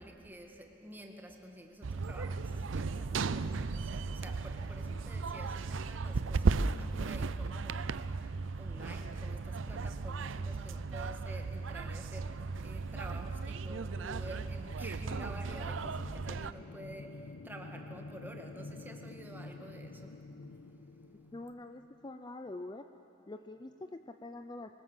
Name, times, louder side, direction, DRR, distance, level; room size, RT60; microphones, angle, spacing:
voice 1, 0.0-21.3, right 1 dB, 10° right, 2 dB, 2.1 m, -50 dB
sound 1, 1.8-16.5, right 4 dB, 80° right, 0.6 m, -35 dB
sound 2, 15.1-22.2, left 3 dB, 80° left, 0.7 m, -49 dB
voice 2, 21.3-22.9 23.3-24.8, left 2 dB, 25° left, 8 dB, 0.5 m, -45 dB
25.0 x 20.5 x 7.5 m, 2.9 s
head